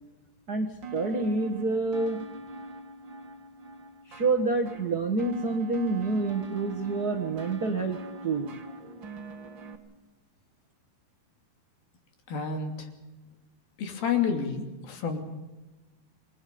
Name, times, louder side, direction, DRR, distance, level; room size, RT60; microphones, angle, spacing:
voice 1, 0.5-2.3 4.1-8.0 8.2-8.6, right 3 dB, 80° right, 3 dB, 0.8 m, -28 dB
sound 1, 0.8-9.8, right 3 dB, 40° right, 1.8 m, -43 dB
voice 2, 12.3-12.9 13.8-15.2, left 6 dB, 70° left, 4 dB, 4.5 m, -29 dB
28.0 x 21.0 x 5.3 m, 1.1 s
omnidirectional pair, 4.4 m